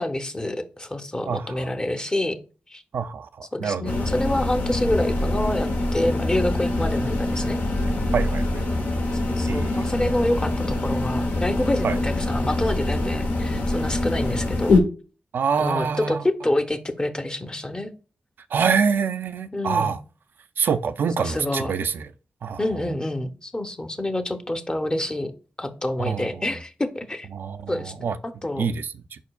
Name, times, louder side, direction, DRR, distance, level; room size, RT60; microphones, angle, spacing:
voice 1, 0.0-2.4 2.7-2.8 3.5-7.6 9.3-14.8 15.6-17.9 19.5-19.9 21.2-21.7 22.6-25.3 25.6-27.3 27.7-28.7, left 1 dB, 25° left, 0.7 m, -27 dB
voice 2, 1.3-1.7 2.9-4.0 8.1-8.6 9.5-9.9 11.8-12.0 15.3-16.2 18.5-20.0 20.6-22.1 22.4-22.6 26.0-26.4 27.3-28.2 28.6-29.2, right 6 dB, 80° right, 0.3 m, -26 dB
sound 1, 3.9-14.8, left 2 dB, 80° left, 0.8 m, -24 dB
4.8 x 4.4 x 2.3 m
cardioid pair, 50°, 3 cm